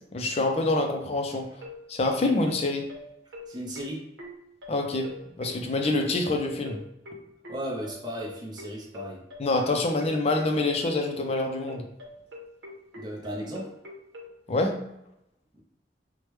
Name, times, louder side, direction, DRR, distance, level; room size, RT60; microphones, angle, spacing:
voice 1, 0.1-1.4 1.9-2.8 4.7-5.1 5.4-6.8 9.4-11.8 14.5-14.7, left 2 dB, 35° left, 3 dB, 0.4 m, -26 dB
sound 1, 1.6-14.3, left 2 dB, 85° right, 0.7 m, -43 dB
voice 2, 3.5-4.0 7.5-9.2 13.0-13.7 15.5-15.6, equal, 25° right, -3 dB, 0.5 m, -35 dB
3.1 x 2.1 x 3.0 m, 0.83 s
head